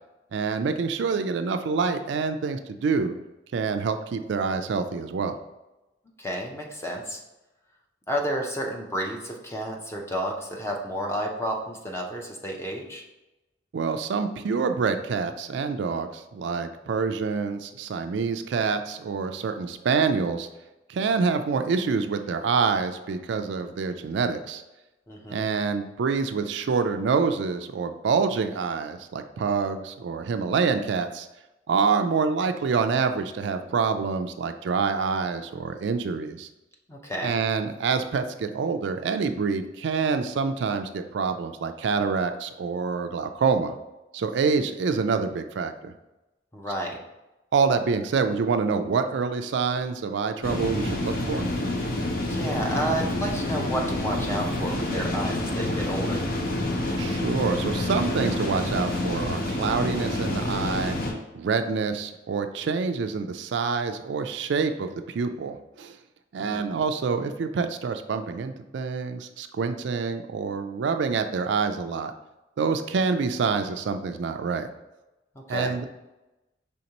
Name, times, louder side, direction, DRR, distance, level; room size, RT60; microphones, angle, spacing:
voice 1, 0.3-3.1 3.5-5.4 13.7-20.5 20.9-24.6 25.3-31.3 31.7-36.5 37.2-43.7 44.1-45.9 47.5-51.5 57.0-61.0 61.3-66.0 66.3-72.1 72.6-74.7 75.5-75.8, right 5 dB, 70° right, 8 dB, 0.4 m, -26 dB
voice 2, 6.2-7.2 8.1-13.0 25.1-25.4 36.9-37.4 46.5-47.0 52.3-56.2 66.4-66.6 75.3-75.8, right 1 dB, 15° left, 0 dB, 0.6 m, -31 dB
sound 1, 50.4-61.1, left 1 dB, 50° left, 0.8 m, -28 dB
5.2 x 3.5 x 2.9 m, 1.0 s
head